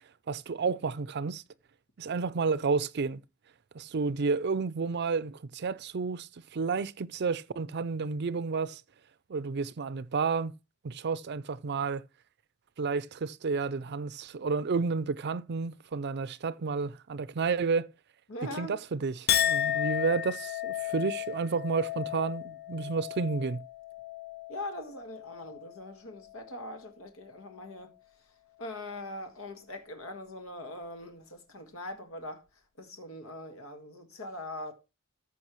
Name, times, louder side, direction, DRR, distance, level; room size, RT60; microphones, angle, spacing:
voice 1, 0.3-1.4 2.0-3.2 3.7-8.8 9.3-10.5 10.8-12.0 12.8-17.9 18.6-23.6, right 4 dB, 55° right, 0.5 m, -31 dB
voice 2, 18.3-18.7 24.5-27.9 28.6-32.4 32.8-34.7, left 1 dB, 85° left, 1.7 m, -41 dB
Chink clink, 19.3-25.8 26.2-26.8, left 11 dB, 50° left, 0.4 m, -33 dB
14.0 x 5.5 x 3.0 m
head